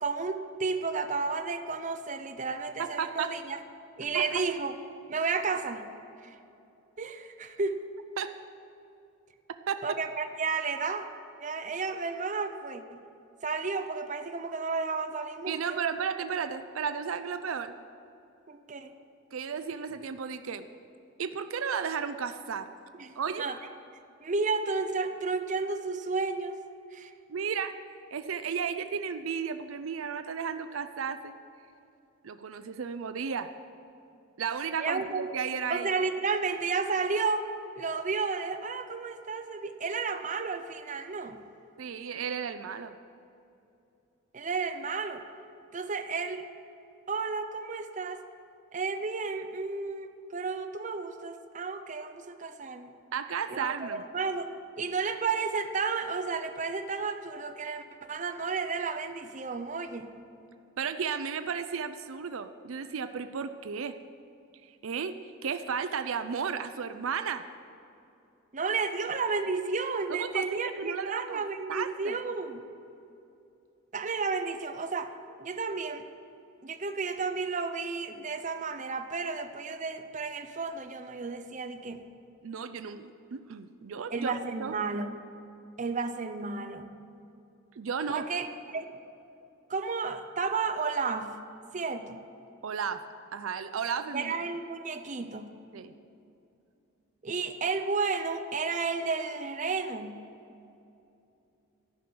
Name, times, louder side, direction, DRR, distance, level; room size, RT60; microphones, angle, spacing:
voice 1, 0.0-3.6 4.0-4.7 5.1-5.9 6.2-6.3 7.0-7.8 9.8-11.1 11.4-13.0 13.4-15.8 18.5-18.9 23.0-23.6 24.2-26.6 26.9-27.1 34.8-35.3 35.7-37.5 37.8-41.4 44.3-45.2 45.7-46.5 47.1-48.2 48.7-52.9 53.5-60.1 68.5-72.6 73.9-75.1 75.4-76.0 76.6-82.0 84.1-85.2 85.8-86.9 88.1-89.0 89.7-91.4 91.7-92.2 94.1-95.5 97.2-100.2, right 4 dB, 35° right, 7 dB, 0.6 m, -32 dB
voice 2, 2.8-3.3 4.1-4.4 8.2-8.3 9.7-9.8 15.5-17.8 19.3-20.6 21.2-22.7 23.2-23.4 27.3-27.7 28.1-31.3 32.2-33.5 34.4-35.9 41.8-42.9 53.1-54.0 60.8-64.0 64.8-67.4 70.1-71.4 71.7-72.2 82.4-84.7 87.8-88.3 92.6-93.0 93.3-94.3 95.7-95.9, right 6 dB, 75° right, 10 dB, 0.5 m, -34 dB
14.0 x 6.1 x 8.5 m, 2.7 s
head